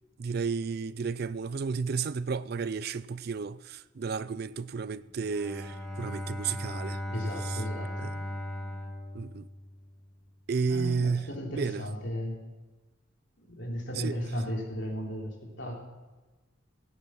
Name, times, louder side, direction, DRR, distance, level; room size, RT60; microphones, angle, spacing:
voice 1, 0.2-7.0 7.4-7.6 8.0-8.1 9.1-9.5 10.5-11.8 14.0-14.4, right 5 dB, 50° right, 0.4 m, -32 dB
Bowed string instrument, 5.1-10.0, left 1 dB, 5° left, 1.5 m, -37 dB
voice 2, 7.1-8.1 10.7-12.4 13.4-15.7, equal, 60° left, 3.2 m, -35 dB
17.0 x 9.5 x 5.9 m
head